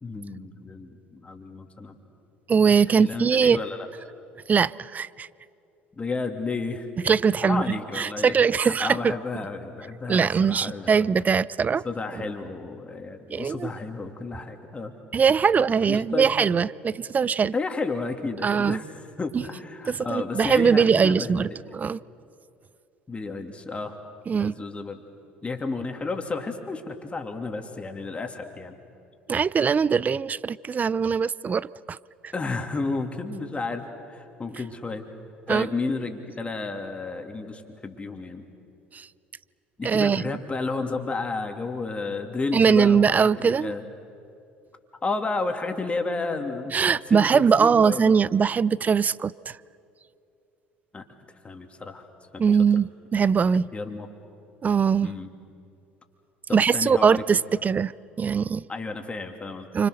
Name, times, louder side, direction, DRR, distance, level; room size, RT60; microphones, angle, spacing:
voice 1, 0.0-1.9 2.9-3.9 6.0-6.9 7.4-11.0 11.8-14.9 15.8-16.5 17.1-17.2 17.5-18.9 19.2-21.3 23.1-24.0 24.4-25.0 25.4-28.8 32.3-35.1 35.5-38.4 39.8-43.8 45.0-46.7 47.1-48.4 50.9-51.1 51.4-52.1 52.3-52.5 53.7-54.1 55.0-55.3 56.5-57.2 58.7-59.7, left 3 dB, 25° left, 2.9 m, -32 dB
voice 2, 2.5-3.6 4.5-5.3 7.1-9.1 10.1-11.8 13.3-13.7 15.1-17.5 18.4-18.8 19.9-22.0 24.3-24.5 29.3-32.0 32.2-32.3 35.5-35.7 38.9-39.1 39.8-40.2 42.5-43.7 46.7-49.6 52.4-53.7 54.6-55.1 56.5-57.9 58.2-58.6 59.7-59.9, right 6 dB, 30° right, 0.5 m, -21 dB
29.0 x 25.5 x 6.6 m
hypercardioid pair, 60°, 5 cm